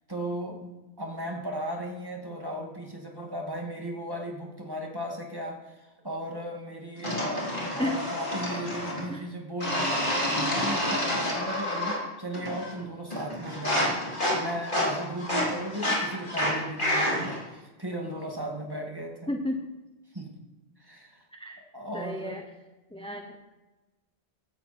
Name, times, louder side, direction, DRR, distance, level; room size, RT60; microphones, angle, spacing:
voice 1, 0.1-14.0 14.3-19.3 20.1-20.3 20.8-21.2 21.7-22.4, right 1 dB, 20° right, 1 dB, 2.3 m, -36 dB
sound 1, 7.0-9.1 9.6-12.1 12.3-12.8 13.1-17.4, left 1 dB, 50° left, 4.1 m, -29 dB
voice 2, 19.3-19.7 21.3-21.6 21.9-22.4 22.9-23.3, left 1 dB, 5° left, 4 dB, 1.0 m, -32 dB
15.5 x 13.0 x 4.4 m, 1.1 s
omnidirectional pair, 1.1 m